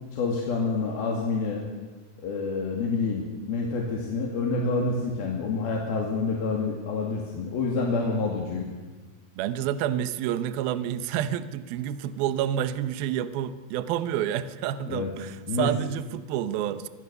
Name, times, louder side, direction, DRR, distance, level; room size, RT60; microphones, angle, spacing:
voice 1, 0.1-1.7 2.2-8.7 14.9-15.1 15.5-15.7, left 4 dB, 55° left, 0 dB, 3.8 m, -28 dB
voice 2, 9.4-16.9, right 10 dB, 80° right, 12 dB, 2.1 m, -29 dB
25.5 x 22.0 x 6.8 m, 1.3 s
omnidirectional pair, 5.7 m